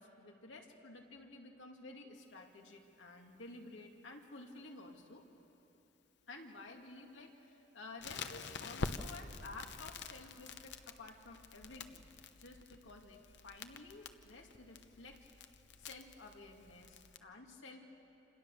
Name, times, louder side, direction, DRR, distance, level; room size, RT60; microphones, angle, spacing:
voice 1, 0.0-5.3 6.3-12.1 12.4-15.3 15.8-17.8, left 2 dB, 90° left, 2 dB, 2.4 m, -53 dB
Crackle, 8.0-17.2, left 4 dB, 65° left, 0.9 m, -47 dB
27.5 x 27.5 x 6.9 m, 2.9 s
head